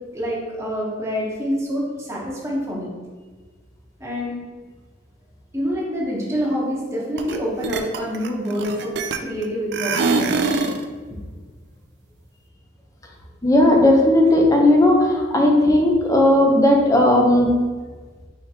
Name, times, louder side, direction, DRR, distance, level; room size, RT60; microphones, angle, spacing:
voice 1, 0.1-2.9 4.0-4.4 5.5-8.9 9.2-10.4 11.1-11.2, equal, 15° right, -4 dB, 0.9 m, -26 dB
sound 1, 7.2-7.4 7.6-9.4 9.7-10.8, right 4 dB, 60° right, 0.3 m, -23 dB
voice 2, 13.4-17.5, left 1 dB, 15° left, 0 dB, 0.6 m, -15 dB
4.7 x 3.5 x 2.8 m, 1.4 s
head